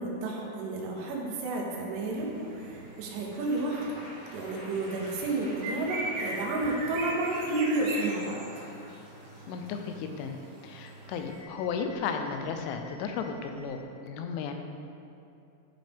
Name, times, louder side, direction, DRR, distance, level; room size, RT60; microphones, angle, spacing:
voice 1, 0.0-3.8 4.3-8.4, right 2 dB, 90° right, -2 dB, 3.8 m, -31 dB
sound 1, 1.9-13.8, equal, 60° left, 0.9 m, -49 dB
sound 2, 2.1-11.4, right 2 dB, 65° right, 3.2 m, -41 dB
voice 2, 9.5-10.4 10.6-13.8 14.0-14.6, left 6 dB, 90° left, 6 dB, 3.1 m, -34 dB
13.0 x 5.3 x 3.5 m, 2.7 s
omnidirectional pair, 5.4 m